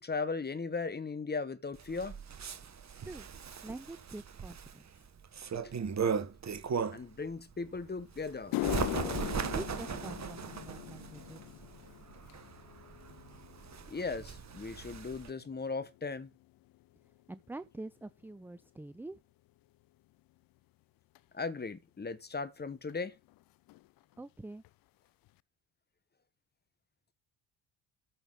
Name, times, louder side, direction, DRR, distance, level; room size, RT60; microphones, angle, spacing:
voice 1, 0.0-2.2 5.6-5.7 6.9-8.5 13.9-16.3 21.3-23.1, left 4 dB, 20° left, 1.3 m, -37 dB
Bird, 1.8-7.2 7.6-15.3, right 6 dB, 35° right, 1.5 m, -38 dB
voice 2, 3.0-3.3 3.6-5.0 9.5-11.4 17.3-19.2 24.2-24.6, right 2 dB, 5° right, 0.5 m, -45 dB
sound 1, 7.8-7.9 8.3-16.8 17.1-17.6 18.3-18.4 21.2-21.3 22.9-23.0 23.2-23.4 23.7-24.2 24.6-24.7 25.3-25.4, left 18 dB, 45° left, 0.5 m, -41 dB
13.5 x 5.8 x 4.1 m
hypercardioid pair, 60°, 50 cm